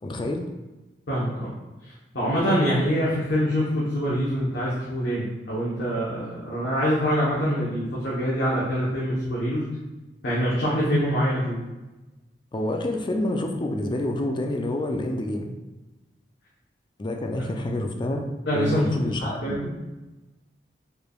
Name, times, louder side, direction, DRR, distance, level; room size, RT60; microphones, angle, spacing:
voice 1, 0.0-0.5 12.5-15.5 17.0-18.2 18.5-19.4, left 1 dB, 25° left, 4 dB, 0.4 m, -28 dB
voice 2, 1.1-1.5 2.1-9.6 10.2-11.6 18.5-19.7, equal, 80° left, -8 dB, 1.0 m, -25 dB
4.7 x 3.2 x 2.3 m, 1.1 s
head